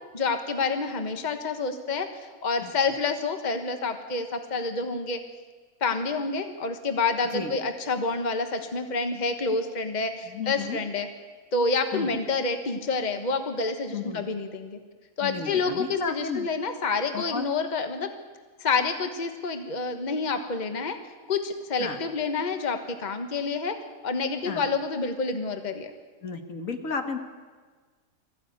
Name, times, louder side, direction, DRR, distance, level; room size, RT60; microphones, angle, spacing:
voice 1, 0.1-5.2 5.8-11.1 11.5-14.8 15.2-18.1 18.6-21.0 21.3-23.8 24.0-25.9, left 4 dB, 35° left, 7 dB, 1.4 m, -28 dB
voice 2, 10.2-10.8 11.9-12.1 13.9-14.2 15.2-16.5 17.1-17.5 21.8-22.0 24.4-24.7 26.2-27.2, left 5 dB, 70° left, 6 dB, 1.9 m, -33 dB
21.0 x 14.5 x 9.4 m, 1.4 s
omnidirectional pair, 1.5 m